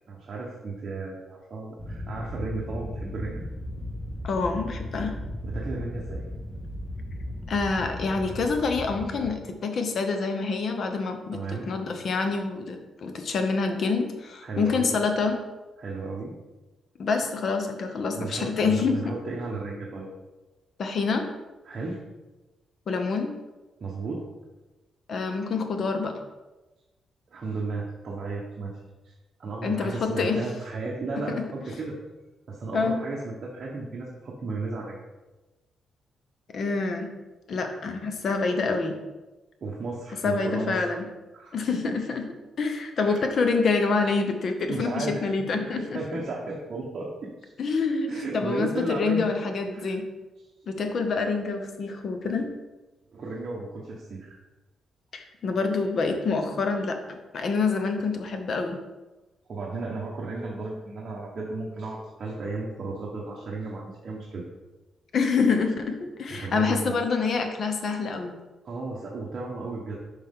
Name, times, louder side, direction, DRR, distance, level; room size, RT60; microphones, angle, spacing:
voice 1, 0.1-3.4 5.4-6.3 11.3-11.7 14.4-14.9 15.8-16.3 18.1-20.1 21.6-22.0 23.8-24.3 27.3-29.1 29.4-32.0 32.5-35.0 39.6-40.8 41.3-41.9 43.0-43.3 44.7-47.5 48.1-49.3 49.7-50.0 53.1-54.4 59.5-64.4 66.3-67.0 68.6-70.0, right 3 dB, 40° right, -4 dB, 1.0 m, -34 dB
sound 1, 1.8-9.3, left 1 dB, 15° left, 1.2 m, -36 dB
voice 2, 4.2-5.2 7.5-15.4 17.0-19.1 20.8-21.3 22.9-23.3 25.1-26.2 29.6-30.4 31.2-31.5 32.7-33.0 36.5-37.1 37.5-39.0 40.2-41.0 41.5-42.3 42.6-46.0 47.6-50.1 50.7-52.5 55.1-58.8 65.1-68.3, left 4 dB, 50° left, 5 dB, 0.9 m, -27 dB
6.8 x 5.3 x 3.7 m, 1.1 s
cardioid pair, 135°, 0 cm